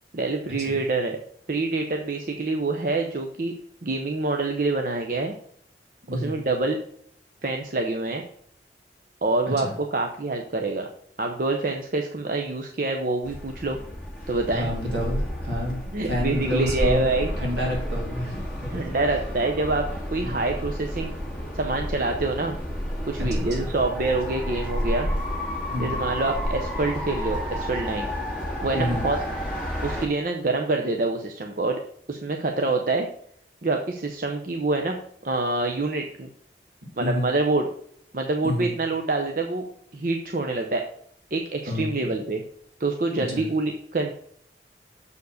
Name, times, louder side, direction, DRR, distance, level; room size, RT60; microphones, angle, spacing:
voice 1, 0.1-1.2 1.5-3.5 3.8-5.3 6.1-6.8 7.4-8.2 9.2-10.9 11.2-13.8 14.3-14.7 15.9-17.3 18.7-21.1 21.5-22.6 23.1-25.1 25.8-28.1 28.6-29.2 29.8-31.8 32.1-33.1 33.6-35.0 35.2-36.3 37.0-37.7 38.1-39.7 39.9-40.8 41.3-42.4 42.8-44.1, right 3 dB, 50° right, 3 dB, 0.7 m, -26 dB
sound 1, 13.2-30.1, equal, 5° right, 1.9 m, -31 dB
voice 2, 14.5-18.8 20.2-20.4 23.2-23.4 25.7-26.0 28.7-29.0 37.0-37.3 38.4-38.7 41.7-42.0 43.3-43.4, left 1 dB, 80° right, -2 dB, 3.2 m, -29 dB
6.9 x 4.7 x 6.3 m, 0.64 s
head